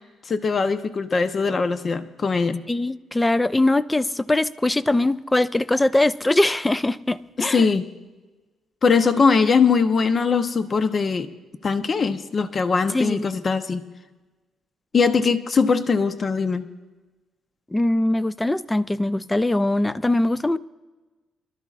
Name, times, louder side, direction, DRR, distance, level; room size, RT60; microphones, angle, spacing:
voice 1, 0.3-2.6 7.4-7.9 8.8-11.3 11.6-13.8 14.9-16.7, left 5 dB, 40° left, 0.8 m, -21 dB
voice 2, 2.7-7.7 12.9-13.2 17.7-20.6, left 2 dB, 15° left, 0.4 m, -21 dB
25.0 x 13.0 x 2.5 m
cardioid pair, 90°, 0 cm